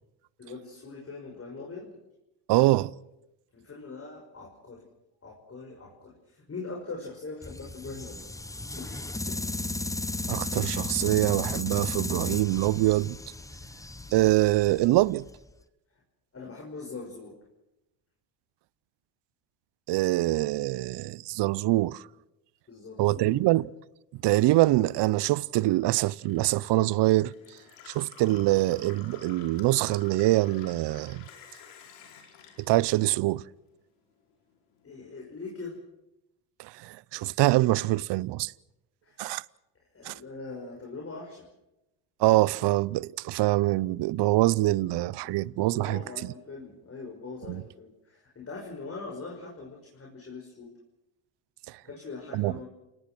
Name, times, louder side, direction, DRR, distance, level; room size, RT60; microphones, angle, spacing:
voice 1, 0.4-1.9 3.5-4.8 5.2-8.2 8.8-9.5 16.3-17.3 22.7-23.4 34.8-35.8 39.0-39.2 39.9-41.5 45.2-45.3 45.7-50.7 51.8-52.7, left 3 dB, 30° left, 5.8 m, -42 dB
voice 2, 2.5-2.9 10.3-13.2 14.1-15.2 19.9-22.0 23.0-23.7 24.1-27.3 27.9-31.2 32.6-33.4 36.6-38.5 39.2-39.4 40.0-40.1 42.2-46.0 47.5-47.6 52.3-52.5, right 18 dB, 60° right, 0.7 m, -24 dB
sound 1, 7.4-15.5, left 2 dB, 5° left, 0.9 m, -35 dB
Gurgling / Water tap faucet / Sink (filling or washing), 24.1-33.7 34.0-34.9, left 7 dB, 85° left, 5.1 m, -51 dB
29.0 x 18.5 x 6.2 m
supercardioid pair, 90°, 48 cm